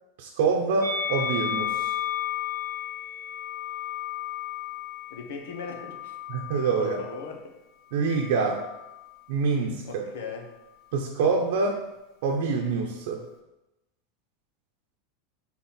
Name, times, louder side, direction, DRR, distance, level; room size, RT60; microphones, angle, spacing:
voice 1, 0.2-1.9 6.3-7.0 7.9-8.6 9.3-10.0 10.9-11.8 12.2-13.2, right 4 dB, 70° right, 0 dB, 0.7 m, -26 dB
Musical instrument, 0.8-7.2 8.1-9.1, left 9 dB, 60° left, 2.0 m, -33 dB
voice 2, 5.1-6.1 6.8-7.5 9.9-10.5, left 5 dB, 85° left, 4 dB, 1.0 m, -38 dB
4.4 x 4.1 x 5.6 m, 0.99 s
supercardioid pair, 145°, 0 cm